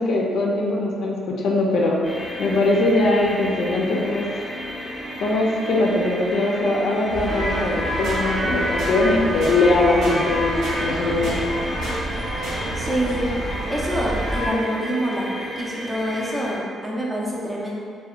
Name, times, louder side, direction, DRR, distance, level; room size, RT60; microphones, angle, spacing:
voice 1, 0.0-2.0 2.4-4.2 5.2-11.4, left 2 dB, 70° left, -2 dB, 0.4 m, -21 dB
sound 1, 2.0-16.6, equal, 25° left, 0.6 m, -33 dB
sound 2, 7.1-14.5, right 1 dB, 60° right, 1.0 m, -27 dB
sound 3, 8.0-8.2 8.8-8.9 9.4-9.6 10.0-10.2 10.6-10.8 11.2-11.4 11.8-12.0 12.4-12.6, equal, 90° right, 1.1 m, -34 dB
voice 2, 12.7-13.2 13.7-17.7, right 1 dB, 15° right, -5 dB, 0.5 m, -26 dB
2.7 x 2.1 x 2.4 m, 2.2 s
cardioid pair, 90°, 0 cm